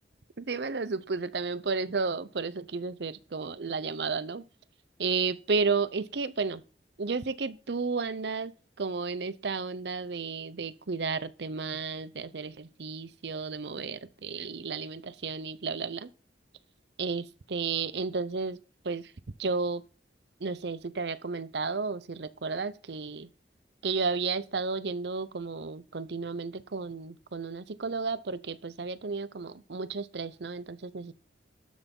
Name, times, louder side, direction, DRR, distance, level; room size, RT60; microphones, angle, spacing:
voice 1, 0.4-4.4 5.0-6.6 7.0-8.5 8.8-16.1 17.0-18.6 18.8-19.1 19.4-19.8 20.4-23.3 23.8-31.1, right 4 dB, 75° right, 0.7 m, -32 dB
12.5 x 6.1 x 5.4 m
head